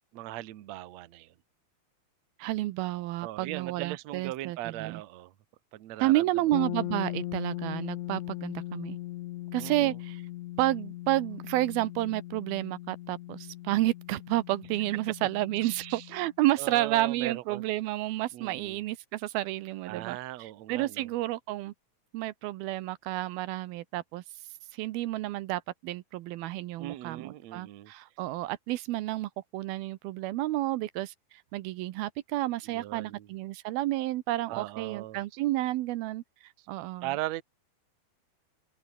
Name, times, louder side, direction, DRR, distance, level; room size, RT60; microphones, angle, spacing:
voice 1, 0.0-1.3 3.2-5.3 5.7-6.2 9.6-10.0 15.6-16.1 16.6-17.6 18.3-18.8 19.9-21.1 26.8-27.9 32.7-33.3 34.5-35.2 36.6-36.7 37.0-37.4, right 15 dB, 65° right, 1.9 m, -39 dB
voice 2, 2.4-5.0 6.0-9.0 9.5-10.2 10.6-21.7 22.1-24.2 24.7-31.1 31.5-36.2 36.7-37.1, right 16 dB, 85° right, 2.7 m, -30 dB
sound 1, 6.5-16.3, left 16 dB, 80° left, 1.6 m, -39 dB
open air
omnidirectional pair, 4.4 m